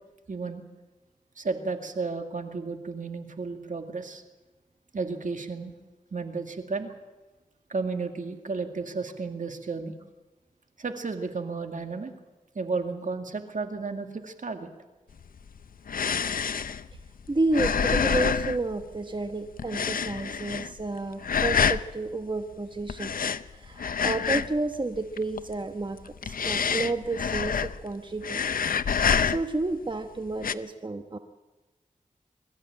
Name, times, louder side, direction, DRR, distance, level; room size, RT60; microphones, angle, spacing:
voice 1, 0.3-0.6 1.4-4.2 4.9-5.7 6.1-6.9 7.7-10.0 10.8-12.1 12.5-14.7, right 4 dB, 65° right, 5 dB, 2.1 m, -33 dB
sound 1, 15.2-19.3 19.6-20.9 21.2-21.9 22.9-24.7 24.9-25.5 26.0-27.9 28.2-29.7 30.3-30.5, left 6 dB, 80° left, 0.6 m, -27 dB
voice 2, 17.3-23.1 23.5-28.6 29.2-31.2, right 2 dB, 35° right, 7 dB, 1.1 m, -31 dB
22.5 x 14.0 x 8.8 m, 1.2 s
cardioid pair, 55°, 14 cm